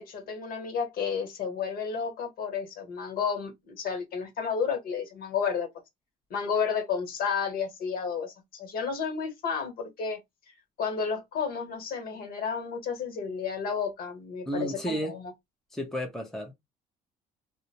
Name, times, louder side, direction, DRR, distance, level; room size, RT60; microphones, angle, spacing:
voice 1, 0.0-5.7 6.3-10.2 10.8-15.3, left 6 dB, 60° left, 1.2 m, -31 dB
voice 2, 14.5-15.2 15.7-16.5, equal, 5° left, 0.7 m, -32 dB
2.5 x 2.1 x 2.8 m
cardioid pair, 110°, 17 cm